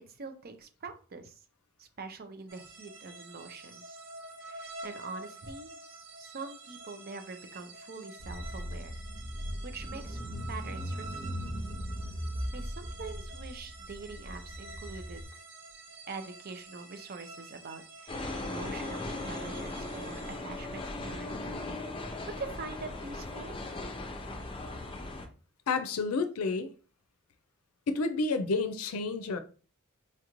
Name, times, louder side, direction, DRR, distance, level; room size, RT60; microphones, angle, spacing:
voice 1, 0.0-1.4 1.8-4.0 4.4-5.7 6.2-9.0 9.6-10.2 10.5-11.2 12.5-15.2 16.1-21.5 22.3-23.6, right 4 dB, 45° right, 0.6 m, -44 dB
sound 1, 2.5-20.4, right 3 dB, 60° right, 1.4 m, -48 dB
Car / Engine, 8.2-15.2, equal, 5° right, 1.0 m, -39 dB
sound 2, 18.1-25.3, left 2 dB, 25° left, 0.5 m, -38 dB
voice 2, 25.7-26.7 27.9-29.4, left 3 dB, 85° left, 0.4 m, -30 dB
4.4 x 2.5 x 3.0 m
head